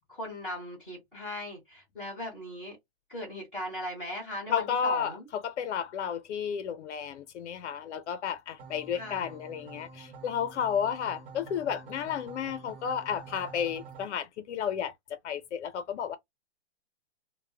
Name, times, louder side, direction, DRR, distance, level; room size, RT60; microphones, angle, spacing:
voice 1, 0.1-2.8 3.1-5.2 8.9-9.3, left 1 dB, ahead, 0.3 m, -38 dB
voice 2, 4.5-14.9 15.2-16.2, left 8 dB, 85° left, 0.5 m, -32 dB
sound 1, 8.6-14.1, right 4 dB, 55° right, 1.0 m, -48 dB
2.0 x 2.0 x 3.4 m
hypercardioid pair, 165°, 34 cm